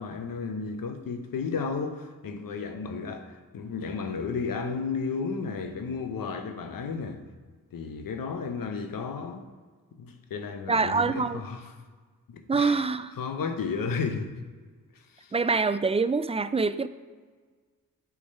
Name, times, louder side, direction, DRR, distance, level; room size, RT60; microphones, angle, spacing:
voice 1, 0.0-7.2 7.7-9.4 9.9-11.7 12.3-12.8 13.1-14.3 15.1-15.3, left 5 dB, 65° left, 0.9 m, -33 dB
voice 2, 10.7-11.4 12.5-13.1 15.3-16.9, right 4 dB, 20° right, 0.3 m, -25 dB
8.5 x 3.6 x 5.4 m
supercardioid pair, 45°, 36 cm